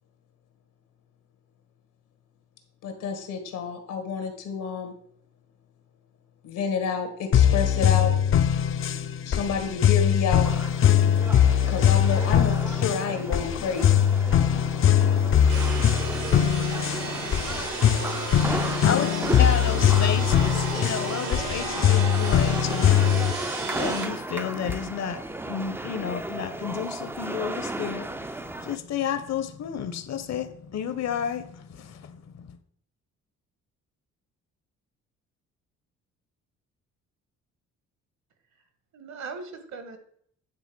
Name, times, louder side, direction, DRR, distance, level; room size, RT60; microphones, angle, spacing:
voice 1, 2.8-4.9 6.4-8.1 9.2-10.5 11.7-14.0, left 6 dB, 90° left, 1.7 m, -29 dB
sound 1, 7.3-23.3, left 9 dB, 45° left, 0.5 m, -21 dB
sound 2, 10.4-28.8, right 2 dB, 10° right, 0.4 m, -35 dB
sound 3, 15.5-24.1, right 3 dB, 85° right, 2.5 m, -34 dB
voice 2, 18.8-19.2 38.9-40.0, right 4 dB, 65° right, 1.6 m, -42 dB
voice 3, 19.4-32.6, left 7 dB, 60° left, 0.9 m, -32 dB
9.9 x 3.4 x 6.1 m
cardioid pair, 90°, 30 cm